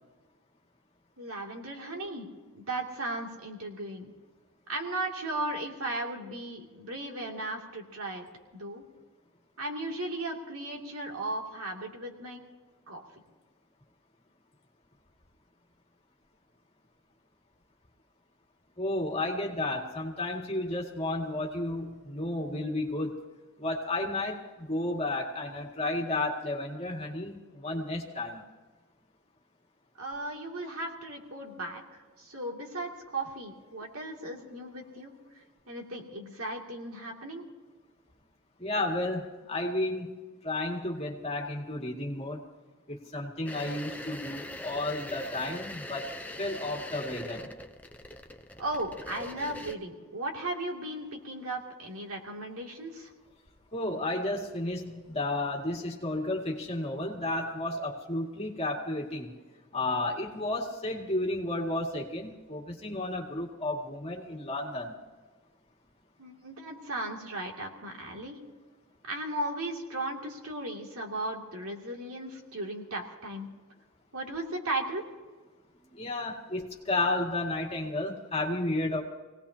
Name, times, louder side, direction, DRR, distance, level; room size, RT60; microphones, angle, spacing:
voice 1, 1.2-4.1 4.7-8.3 8.5-8.8 9.6-12.4 12.9-13.0 30.0-35.1 35.7-37.4 48.6-53.1 66.2-68.4 69.0-73.5 74.1-75.0, right 1 dB, 80° right, 0 dB, 2.7 m, -36 dB
voice 2, 18.8-23.2 23.6-28.4 38.6-40.1 40.4-42.4 42.9-46.1 46.4-47.5 53.7-59.3 59.7-64.9 75.9-79.0, left 2 dB, 25° left, -1 dB, 2.2 m, -32 dB
sound 1, 43.5-49.7, left 1 dB, 5° left, 0.7 m, -42 dB
26.5 x 18.5 x 2.9 m, 1.3 s
head